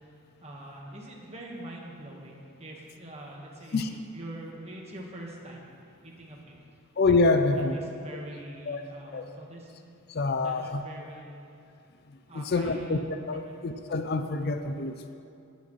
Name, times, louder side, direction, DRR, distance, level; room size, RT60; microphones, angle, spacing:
voice 1, 0.4-5.7 6.0-6.5 7.5-9.7 10.4-11.5 12.3-13.0 13.3-13.6, right 1 dB, 30° right, -2 dB, 1.4 m, -44 dB
voice 2, 7.0-7.8 8.7-8.8 9.1-9.2 10.1-10.8 12.1-13.0 13.3-15.1, left 3 dB, 45° left, 7 dB, 0.4 m, -26 dB
18.5 x 7.6 x 3.2 m, 2.6 s
head